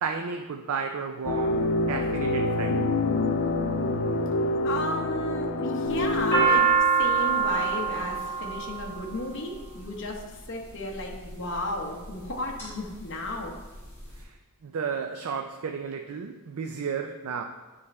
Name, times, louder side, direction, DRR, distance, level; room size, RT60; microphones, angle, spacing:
voice 1, 0.0-2.9 14.1-14.4 14.6-17.4, right 6 dB, 80° right, 4 dB, 0.4 m, -33 dB
sound 1, 1.2-6.5, left 2 dB, 75° left, 0.4 m, -26 dB
voice 2, 4.6-13.5, left 1 dB, 55° left, 0 dB, 0.9 m, -34 dB
sound 2, 5.9-10.1 10.9-11.4 12.0-12.7 13.0-13.1 13.3-14.1, right 5 dB, 10° left, 1.9 m, -25 dB
9.2 x 3.3 x 4.2 m, 1.2 s
head